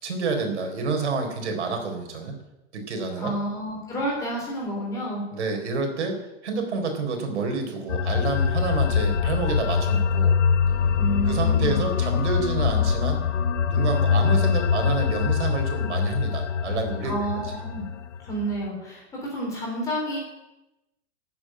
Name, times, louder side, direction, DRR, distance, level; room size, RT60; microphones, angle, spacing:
voice 1, 0.0-2.4 2.7-3.3 5.3-6.2 6.4-10.4 11.3-13.2 13.7-17.1, right 4 dB, 70° right, 4 dB, 4.2 m, -28 dB
voice 2, 3.2-5.2 11.0-11.9 17.0-17.8 18.2-20.2, equal, 10° left, -3 dB, 3.6 m, -30 dB
sound 1, 7.9-18.7, left 6 dB, 85° left, 1.2 m, -23 dB
13.0 x 7.4 x 9.6 m, 0.97 s
hypercardioid pair, 175°, 35 cm